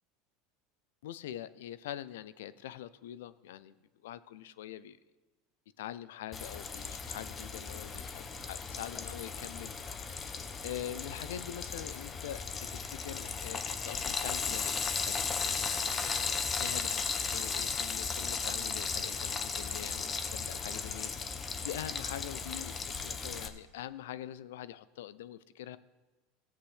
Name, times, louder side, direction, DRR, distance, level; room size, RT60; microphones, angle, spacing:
voice 1, 1.0-3.7 4.0-5.0 5.8-9.9 10.6-12.4 12.7-14.7 15.1-17.0 17.3-21.3 21.6-22.7 23.0-25.8, left 12 dB, 80° left, 16 dB, 0.4 m, -44 dB
Frying (food), 6.3-23.5, left 5 dB, 30° left, 0.8 m, -36 dB
15.0 x 8.2 x 3.3 m, 1.2 s
supercardioid pair, 100°, 0 cm